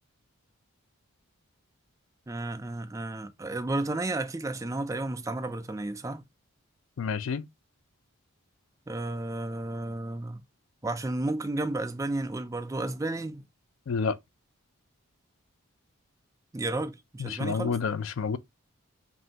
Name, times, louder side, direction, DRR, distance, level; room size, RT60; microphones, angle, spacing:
voice 1, 2.3-6.2 8.9-10.4 10.8-13.4 16.5-17.8, right 2 dB, 15° right, 0.3 m, -32 dB
voice 2, 7.0-7.5 13.9-14.2 17.2-18.4, left 5 dB, 65° left, 0.4 m, -29 dB
5.3 x 2.7 x 2.8 m
head